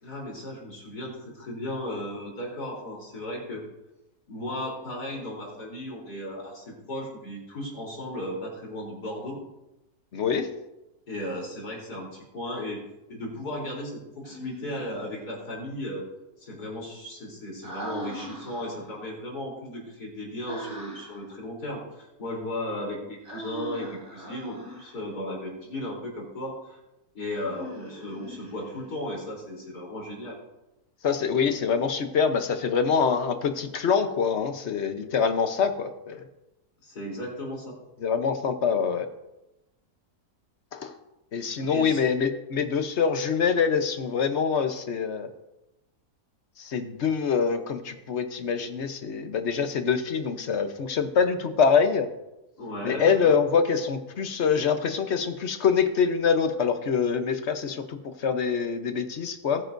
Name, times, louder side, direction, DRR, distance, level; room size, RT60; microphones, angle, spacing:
voice 1, 0.0-3.6 4.3-9.4 11.1-12.8 13.1-16.1 16.4-26.8 27.1-30.4 36.8-37.8 41.6-42.1 52.6-53.4, left 1 dB, 90° left, -2 dB, 4.2 m, -35 dB
voice 2, 10.1-10.5 31.0-36.2 38.0-39.1 40.7-40.9 41.3-45.3 46.6-52.1 52.8-58.0 58.2-59.6, left 6 dB, 50° left, 8 dB, 1.1 m, -25 dB
Human voice, 14.2-15.1 17.6-19.0 20.5-21.2 23.2-25.0 27.3-28.9, equal, 40° right, 3.9 m, -40 dB
19.5 x 9.6 x 2.7 m, 0.94 s
omnidirectional pair, 1.7 m